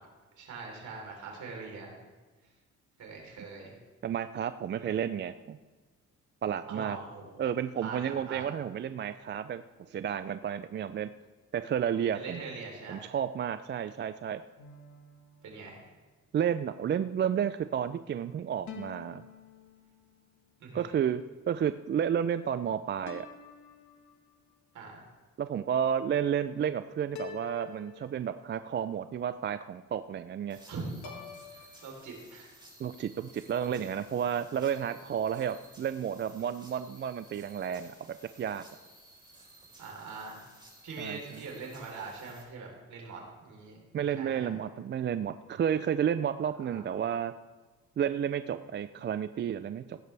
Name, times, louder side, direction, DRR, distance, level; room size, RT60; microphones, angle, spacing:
voice 1, 0.4-2.0 2.4-2.5 3.0-3.7 4.7-4.9 6.7-7.4 7.8-8.5 12.1-13.1 15.4-15.8 20.6-21.0 24.7-25.0 30.7-31.2 31.5-32.5 39.8-40.5 40.8-43.8 44.2-44.5 46.6-46.8, right 4 dB, 70° right, 0 dB, 3.8 m, -42 dB
voice 2, 4.0-5.6 6.4-7.0 7.4-11.1 11.5-12.4 12.9-14.4 16.3-19.2 20.7-23.3 25.4-30.6 32.8-38.6 41.0-41.4 43.9-47.3 48.0-50.0, right 8 dB, 35° right, 12 dB, 0.4 m, -31 dB
sound 1, 14.6-16.2 18.7-20.3 23.0-24.6 27.1-28.7 31.0-31.9, left 8 dB, 75° left, 1.5 m, -48 dB
sound 2, 30.5-42.4, right 1 dB, 15° right, 4.2 m, -56 dB
15.5 x 11.0 x 3.4 m, 1.3 s
cardioid pair, 90°, 30 cm